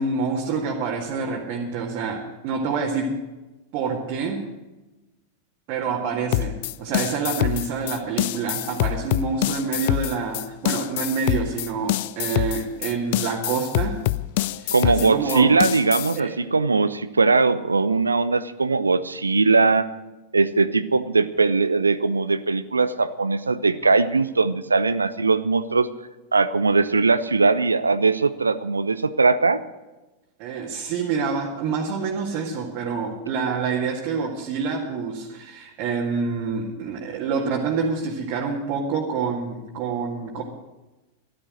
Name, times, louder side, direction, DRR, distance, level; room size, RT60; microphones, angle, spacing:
voice 1, 0.0-3.2 3.7-4.5 5.7-14.0 14.6-15.5 16.2-16.3 30.4-40.4, right 5 dB, 45° right, -2 dB, 2.0 m, -27 dB
sound 1, 6.3-16.2, left 17 dB, 50° left, 0.4 m, -25 dB
voice 2, 14.7-19.9 20.3-25.9 26.3-29.6, right 4 dB, 80° right, 14 dB, 0.5 m, -20 dB
13.5 x 12.0 x 6.5 m, 1.1 s
figure-of-eight pair, 90°, 0 cm